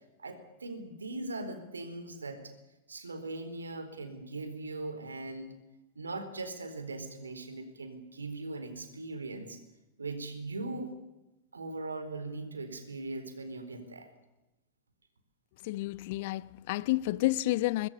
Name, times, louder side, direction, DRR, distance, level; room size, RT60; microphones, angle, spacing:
voice 1, 0.2-2.5 2.9-5.5 6.0-9.6 10.0-10.9 11.5-14.1, right 2 dB, 75° right, 4.2 m, -40 dB
voice 2, 15.6-17.9, left 17 dB, 50° left, 0.8 m, -30 dB
25.0 x 21.5 x 8.4 m
figure-of-eight pair, 90°, 0 cm